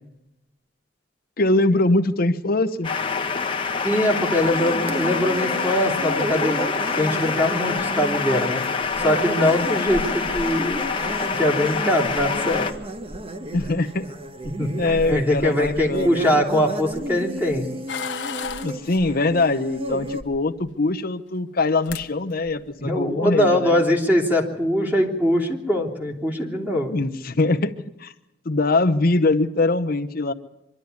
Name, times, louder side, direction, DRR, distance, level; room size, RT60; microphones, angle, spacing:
voice 1, 1.4-2.9 13.5-14.1 14.8-16.4 18.6-23.7 26.9-27.7 28.0-28.1 28.4-30.3, left 2 dB, 55° left, 8 dB, 0.8 m, -22 dB
sound 1, 2.8-12.7, left 5 dB, 30° left, 1.4 m, -26 dB
voice 2, 3.8-6.6 6.9-8.6 9.0-10.8 11.4-12.7 14.4-17.7 22.8-26.9, left 1 dB, 10° right, 0 dB, 3.3 m, -22 dB
sound 2, 4.4-20.2, right 1 dB, 30° right, 1.2 m, -33 dB
sound 3, 17.9-18.7 20.1-20.7 21.6-21.7 21.8-22.1 22.4-22.8, left 7 dB, 85° left, 1.2 m, -32 dB
24.5 x 12.5 x 9.5 m, 0.89 s
head